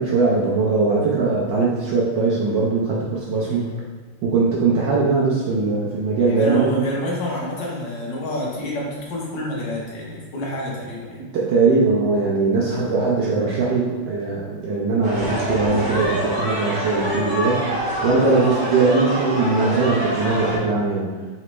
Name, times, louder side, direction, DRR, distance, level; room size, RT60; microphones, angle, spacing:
voice 1, 0.0-3.7 4.2-6.7 11.2-21.1, right 4 dB, 75° right, -4 dB, 1.1 m, -20 dB
voice 2, 3.4-3.8 6.3-11.2 12.6-13.0 18.2-18.5, left 1 dB, 60° left, -4 dB, 1.4 m, -29 dB
sound 1, 15.0-20.6, equal, 35° right, 0.3 m, -25 dB
4.0 x 3.1 x 3.0 m, 1.4 s
omnidirectional pair, 2.4 m